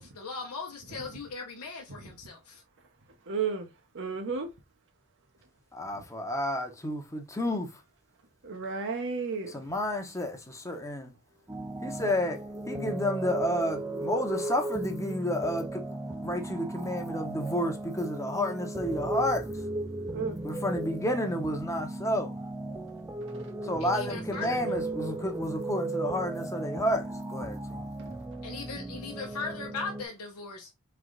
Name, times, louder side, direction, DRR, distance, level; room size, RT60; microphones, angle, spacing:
voice 1, 0.0-2.6 23.8-24.6 28.4-30.7, left 4 dB, 75° left, 0.8 m, -39 dB
voice 2, 3.3-3.7 3.9-4.5 8.4-9.5 20.1-20.4 23.4-23.5, right 5 dB, 55° right, 0.8 m, -32 dB
voice 3, 5.7-7.8 9.5-11.1 11.8-12.4 12.7-16.0 16.2-19.5 20.4-22.4 23.6-27.9, left 1 dB, 15° left, 0.9 m, -31 dB
sound 1, 11.5-30.0, right 2 dB, 10° right, 0.4 m, -36 dB
3.7 x 3.4 x 3.8 m
head